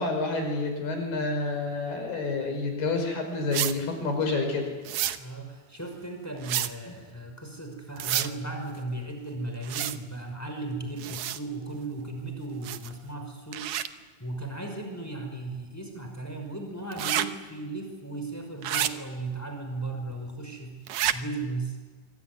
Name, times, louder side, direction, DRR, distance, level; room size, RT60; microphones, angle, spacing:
voice 1, 0.0-4.7, left 3 dB, 85° left, 4 dB, 7.5 m, -29 dB
sound 1, 3.5-3.8 4.9-5.2 6.4-6.7 8.0-8.3 9.6-10.0 11.0-11.4 12.6-13.0 13.5-13.9 16.9-17.3 18.6-18.9 20.9-21.2, right 12 dB, 70° right, 1.8 m, -28 dB
voice 2, 5.2-13.8 14.2-20.7 21.1-21.8, right 2 dB, 5° left, 4 dB, 5.4 m, -36 dB
26.0 x 23.5 x 9.6 m, 1.3 s
omnidirectional pair, 4.4 m